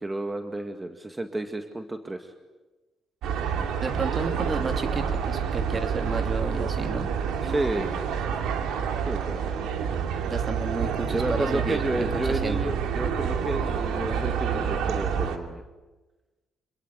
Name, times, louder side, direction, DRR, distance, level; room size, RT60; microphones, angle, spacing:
voice 1, 0.0-2.3 7.4-8.0 9.1-9.6 11.1-15.6, right 2 dB, 15° right, 6 dB, 2.0 m, -31 dB
sound 1, 3.2-15.4, right 7 dB, 85° right, 2.6 m, -28 dB
voice 2, 3.8-7.1 10.3-12.7, right 3 dB, 35° right, 7 dB, 2.7 m, -32 dB
27.0 x 21.5 x 9.4 m, 1.2 s
cardioid pair, 90°, 0 cm